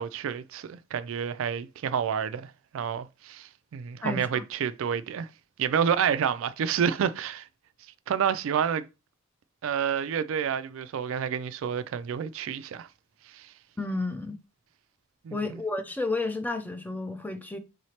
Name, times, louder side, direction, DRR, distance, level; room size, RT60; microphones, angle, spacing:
voice 1, 0.0-5.3 5.6-7.5 8.1-8.9 9.6-12.9 13.3-13.5 15.2-15.6, right 7 dB, 70° right, 0.3 m, -29 dB
voice 2, 4.0-4.4 13.8-14.4 15.3-17.6, left 3 dB, 10° left, 0.4 m, -31 dB
4.8 x 3.1 x 2.8 m
head